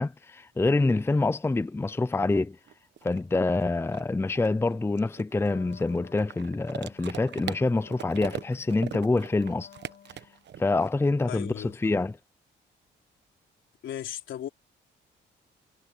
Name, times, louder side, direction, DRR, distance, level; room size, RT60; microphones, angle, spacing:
voice 1, 0.0-2.6 3.0-9.7 10.6-12.2, left 3 dB, 10° left, 0.6 m, -26 dB
sound 1, 2.4-2.5 2.7-10.9, right 10 dB, 60° right, 1.2 m, -41 dB
Wind instrument woodwind instrument, 5.3-10.5, left 10 dB, 60° left, 3.9 m, -53 dB
voice 2, 11.3-12.0 13.8-14.5, left 11 dB, 75° left, 3.9 m, -37 dB
cardioid pair, 90°, 20 cm